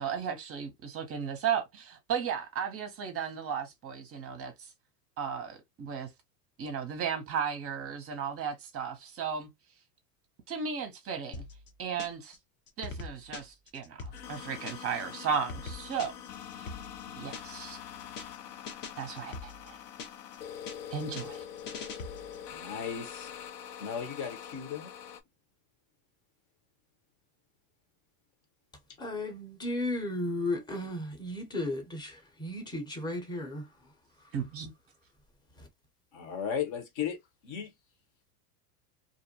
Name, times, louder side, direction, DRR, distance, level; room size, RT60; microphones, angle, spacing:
voice 1, 0.0-4.5 5.2-6.1 6.6-9.5 10.5-11.4 11.8-12.4 12.8-16.1 16.6-16.7 17.2-17.8 19.0-19.8 20.9-21.4 34.3-34.7, right 7 dB, 30° right, 0.6 m, -35 dB
sound 1, 11.3-12.4 12.7-15.0 15.3-17.7 18.0-18.4 18.7-20.4 20.7-22.5, left 4 dB, 25° left, 0.3 m, -43 dB
sound 2, 14.1-25.2, left 9 dB, 75° left, 0.6 m, -44 dB
voice 2, 22.5-23.3 23.8-24.9 36.1-37.2 37.4-37.7, left 8 dB, 55° left, 0.9 m, -35 dB
voice 3, 29.0-33.7 35.6-35.7, left 1 dB, 10° left, 0.7 m, -34 dB
2.5 x 2.1 x 2.7 m
hypercardioid pair, 110°, 48 cm